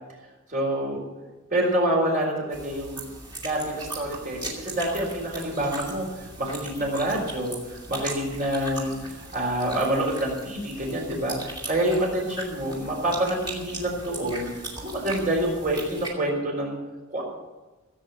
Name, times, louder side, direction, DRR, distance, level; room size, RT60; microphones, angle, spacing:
voice 1, 0.5-1.0 1.5-3.0 3.4-14.5 14.8-16.8 17.1-17.2, right 1 dB, 40° right, -1 dB, 4.2 m, -27 dB
sound 1, 2.5-16.1, right 2 dB, 20° right, 2.5 m, -39 dB
16.0 x 8.1 x 7.1 m, 1.2 s
head